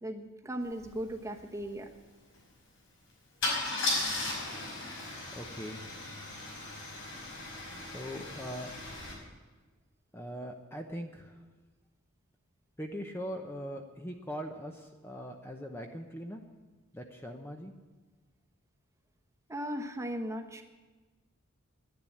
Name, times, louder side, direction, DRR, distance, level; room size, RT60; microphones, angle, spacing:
voice 1, 0.0-1.9 19.5-20.6, equal, 15° right, 3 dB, 1.1 m, -37 dB
Car / Engine starting / Idling, 0.8-0.9 1.2-1.4 3.4-9.1, left 2 dB, 60° left, 5.7 m, -36 dB
voice 2, 5.3-5.8 7.8-8.7 10.1-11.4 12.8-16.4 16.9-17.7, equal, 10° left, 3 dB, 0.8 m, -41 dB
10.5 x 10.5 x 9.8 m, 1.3 s
head